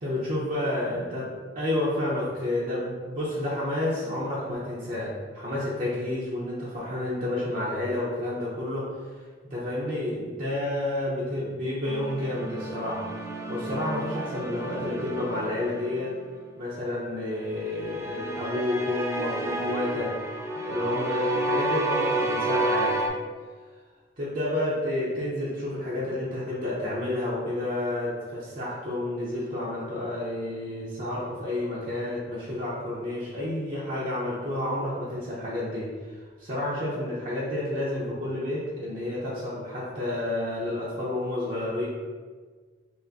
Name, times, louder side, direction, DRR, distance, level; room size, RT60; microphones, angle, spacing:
voice 1, 0.0-8.9 9.5-13.1 13.5-16.1 16.6-20.1 20.6-23.1 24.2-41.9, left 1 dB, 45° right, -7 dB, 0.7 m, -30 dB
sound 1, 11.9-16.2 17.6-23.1, right 2 dB, 15° right, 0.3 m, -30 dB
5.7 x 2.1 x 2.6 m, 1.5 s
head